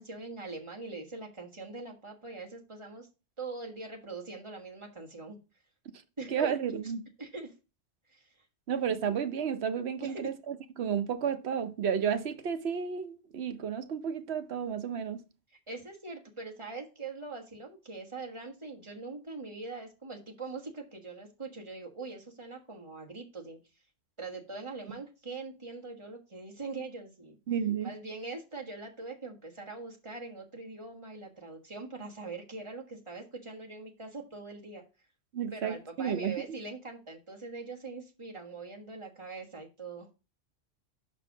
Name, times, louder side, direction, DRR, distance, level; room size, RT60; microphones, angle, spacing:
voice 1, 0.0-3.1 3.4-5.4 6.2-6.5 7.2-7.5 8.1-8.3 10.0-10.3 15.7-23.6 24.2-27.4 27.8-34.8 35.5-40.1, right 3 dB, 25° right, 1.4 m, -42 dB
voice 2, 6.3-7.1 8.7-15.2 27.5-27.9 35.3-36.6, right 7 dB, 60° right, 0.9 m, -32 dB
5.4 x 4.5 x 6.1 m
omnidirectional pair, 1.3 m